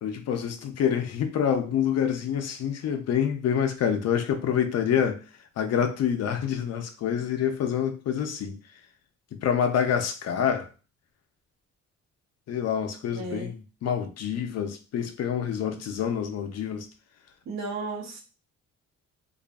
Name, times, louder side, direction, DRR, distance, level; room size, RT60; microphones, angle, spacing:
voice 1, 0.0-5.2 5.6-8.6 9.3-10.7 12.5-16.9, left 8 dB, 55° left, 0.5 m, -27 dB
voice 2, 13.1-13.5 17.5-18.2, right 3 dB, 65° right, 0.8 m, -34 dB
2.5 x 2.3 x 2.3 m
cardioid pair, 90°, 30 cm